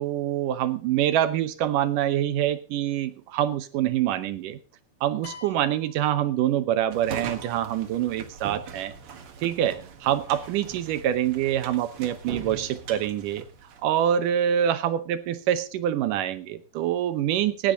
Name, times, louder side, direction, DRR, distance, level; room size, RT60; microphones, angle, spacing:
voice 1, 0.0-4.6 5.0-8.9 9.4-13.5 13.8-17.7, right 11 dB, 70° right, 13 dB, 2.1 m, -25 dB
sound 1, 5.2-6.9, left 5 dB, 55° left, 4.9 m, -47 dB
sound 2, 6.9-14.1, right 6 dB, 50° right, 1.8 m, -41 dB
17.0 x 12.0 x 3.9 m, 0.34 s
omnidirectional pair, 4.5 m